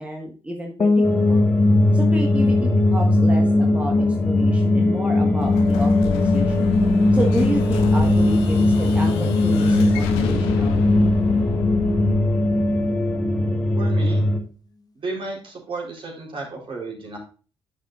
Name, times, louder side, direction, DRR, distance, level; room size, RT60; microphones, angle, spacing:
voice 1, 0.0-1.4 1.9-3.9 4.2-6.7 7.1-11.1, right 1 dB, 10° right, 1 dB, 1.6 m, -30 dB
sound 1, 0.8-13.7, left 3 dB, 30° left, 1.1 m, -22 dB
sound 2, 1.0-14.4, left 1 dB, 10° left, 1.9 m, -21 dB
Explosion, 5.4-14.1, left 6 dB, 70° left, 1.2 m, -30 dB
voice 2, 13.7-14.3 15.0-17.2, right 3 dB, 40° right, -1 dB, 3.9 m, -33 dB
10.5 x 7.4 x 2.5 m, 0.36 s
figure-of-eight pair, 45°, 13 cm